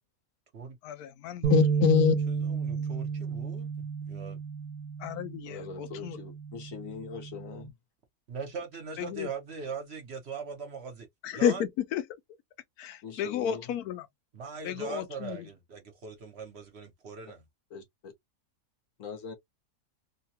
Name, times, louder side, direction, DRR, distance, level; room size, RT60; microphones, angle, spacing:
voice 1, 0.8-2.2 5.0-6.2 9.0-9.3 11.2-12.0 12.8-14.1 14.6-15.5, left 9 dB, 85° left, 1.1 m, -29 dB
sound 1, 1.4-7.7, right 6 dB, 75° right, 1.1 m, -32 dB
voice 2, 2.4-4.4 8.3-11.1 11.3-11.6 14.3-17.4, right 5 dB, 50° right, 1.0 m, -40 dB
voice 3, 5.5-7.7 13.0-13.6 17.7-18.1 19.0-19.3, left 6 dB, 65° left, 1.3 m, -42 dB
3.3 x 2.2 x 2.7 m
omnidirectional pair, 1.6 m